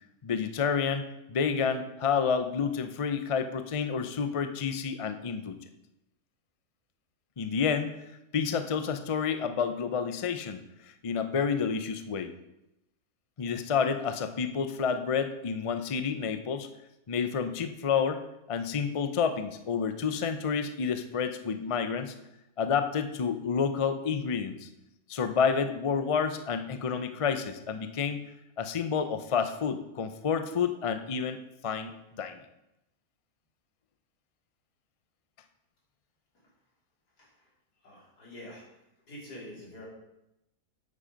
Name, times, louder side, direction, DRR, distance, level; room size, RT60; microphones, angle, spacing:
voice 1, 0.2-5.6 7.4-7.9 8.3-12.3 13.4-16.7 17.1-18.2 18.5-22.1 22.6-24.7 25.1-28.2 28.6-31.4 31.6-32.4, left 6 dB, 60° left, 8 dB, 0.3 m, -29 dB
voice 2, 37.2-37.5 37.8-38.7 39.1-39.9, left 1 dB, 85° left, -5 dB, 3.9 m, -46 dB
8.7 x 8.6 x 5.1 m, 0.88 s
omnidirectional pair, 1.7 m